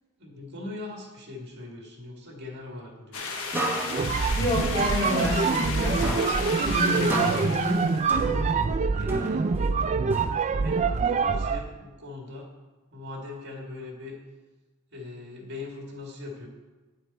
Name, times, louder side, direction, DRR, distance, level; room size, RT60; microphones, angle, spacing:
voice 1, 0.2-3.3 6.9-7.2 8.8-9.9 10.4-12.5 12.9-14.2 14.9-16.5, left 2 dB, 50° right, 0 dB, 1.9 m, -41 dB
sound 1, 3.1-8.2, left 4 dB, 80° left, 1.3 m, -34 dB
sound 2, 3.5-5.8 6.0-8.7 9.1-10.7, right 1 dB, 10° right, 1.0 m, -34 dB
sound 3, 3.9-11.7, right 5 dB, 30° right, 0.3 m, -25 dB
voice 2, 4.3-6.1 6.4-8.5, left 1 dB, 15° left, -6 dB, 3.0 m, -29 dB
9.5 x 7.0 x 4.2 m, 1.3 s
head